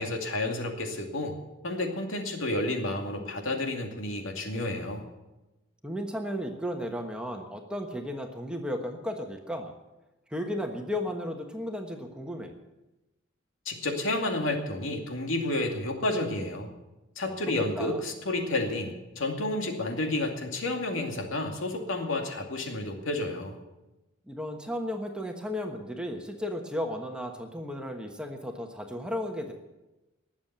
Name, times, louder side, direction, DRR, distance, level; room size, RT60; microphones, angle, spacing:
voice 1, 0.0-1.4 1.6-5.0 13.6-16.7 17.2-23.5, left 2 dB, 85° left, 3 dB, 2.4 m, -30 dB
voice 2, 5.8-9.7 10.3-12.5 17.3-17.4 17.8-18.0 24.3-29.5, equal, 5° right, 3 dB, 1.2 m, -34 dB
19.0 x 7.4 x 8.0 m, 1.0 s
head